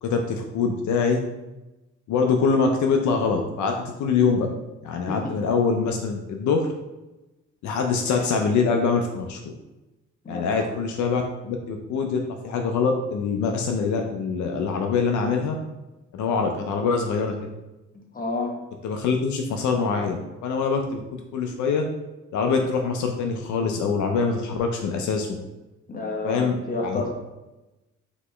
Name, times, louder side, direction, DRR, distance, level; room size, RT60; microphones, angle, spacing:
voice 1, 0.0-1.2 2.1-4.5 4.8-6.7 7.6-9.4 10.3-15.6 16.1-17.4 18.8-21.9 22.3-25.3 26.2-26.5 26.8-27.1, left 5 dB, 75° left, 3 dB, 0.5 m, -24 dB
voice 2, 10.2-10.7 18.1-18.6 25.9-27.1, left 3 dB, 30° left, 0 dB, 1.0 m, -30 dB
4.1 x 2.9 x 3.2 m, 1.0 s
cardioid pair, 90°, 30 cm